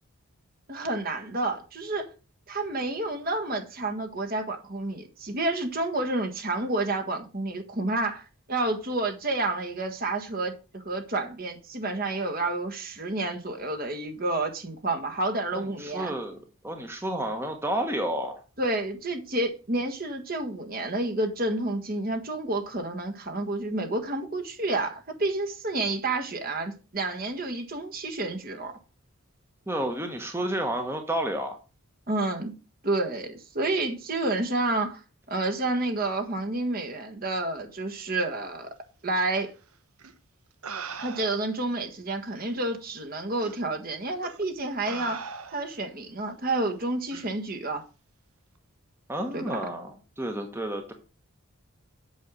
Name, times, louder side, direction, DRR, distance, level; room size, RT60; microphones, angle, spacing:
voice 1, 0.7-2.1 2.5-8.2 8.5-16.1 18.6-28.7 32.1-32.5 32.8-35.0 35.3-38.7 39.0-39.5 41.0-45.2 45.5-47.8 49.3-49.6, right 2 dB, 40° right, 1.5 m, -29 dB
voice 2, 15.6-16.4 16.6-18.4 29.7-31.6 49.1-49.9 50.2-50.9, right 1 dB, 10° right, 1.1 m, -30 dB
sound 1, 40.0-40.1 40.6-41.6 42.4-42.5 43.4-43.6 44.2-44.4 44.9-45.8 47.1-47.3, right 5 dB, 80° right, 1.1 m, -39 dB
8.2 x 6.4 x 6.3 m
head